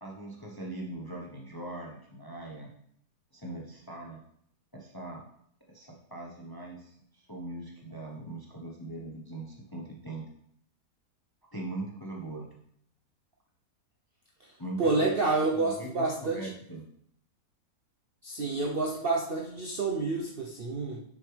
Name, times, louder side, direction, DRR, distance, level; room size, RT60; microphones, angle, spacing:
voice 1, 0.0-2.7 3.3-4.2 4.7-5.2 5.7-10.3 11.5-12.5 14.6-15.1 15.5-16.8, right 2 dB, 20° left, -1 dB, 0.7 m, -40 dB
voice 2, 14.8-16.5 18.2-21.0, right 3 dB, 50° right, -1 dB, 0.7 m, -29 dB
7.2 x 6.5 x 3.3 m, 0.69 s
omnidirectional pair, 1.7 m